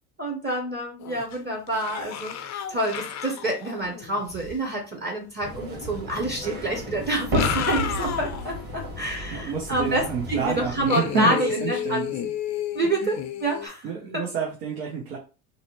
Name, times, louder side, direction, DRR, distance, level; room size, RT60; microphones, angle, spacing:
voice 1, 0.2-2.3 2.7-10.0 10.3-12.1 12.7-13.8 14.1-14.2, right 1 dB, 20° right, 2 dB, 0.6 m, -27 dB
sound 1, 1.0-1.4 1.7-4.6 5.9-6.0 7.1-8.6 9.0-9.1 10.9-13.7, left 9 dB, 35° left, 0.4 m, -32 dB
sound 2, 5.4-10.9, left 1 dB, 45° right, 1.3 m, -32 dB
voice 2, 9.3-12.3 13.0-13.1 13.8-15.2, right 5 dB, 85° right, -1 dB, 0.8 m, -29 dB
2.6 x 2.1 x 2.9 m, 0.34 s
hypercardioid pair, 75°, 50 cm